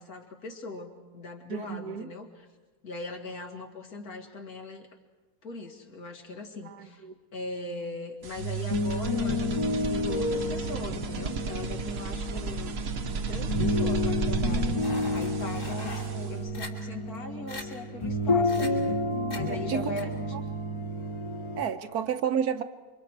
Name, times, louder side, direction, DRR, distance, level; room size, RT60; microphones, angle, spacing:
voice 1, 0.0-2.5 2.8-4.9 5.4-7.1 7.3-12.7 13.3-14.8 15.1-19.0 19.3-20.3, left 2 dB, 65° left, 2.5 m, -40 dB
voice 2, 1.5-2.1 6.7-7.1 19.5-19.9 21.6-22.6, right 8 dB, 75° right, 1.4 m, -31 dB
sound 1, 8.2-21.6, left 1 dB, 20° left, 1.2 m, -30 dB
sound 2, 8.2-16.5, right 5 dB, 50° right, 1.0 m, -34 dB
sound 3, 14.8-16.1 16.5-16.7 17.1-17.2 17.5-17.6 18.4-18.7 19.3-19.4 20.0-20.1, left 3 dB, 50° left, 3.2 m, -40 dB
28.5 x 25.0 x 4.7 m
omnidirectional pair, 1.7 m